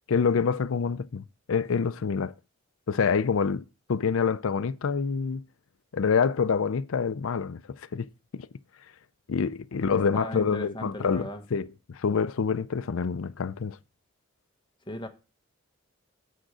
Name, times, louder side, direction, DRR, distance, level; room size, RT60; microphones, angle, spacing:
voice 1, 0.1-2.3 2.9-3.6 3.9-5.4 5.9-7.6 7.9-8.1 8.3-8.5 9.3-13.8, left 5 dB, 75° left, 0.5 m, -26 dB
voice 2, 9.9-11.4 14.9-15.1, left 1 dB, 20° left, 1.1 m, -36 dB
7.8 x 6.3 x 4.8 m
head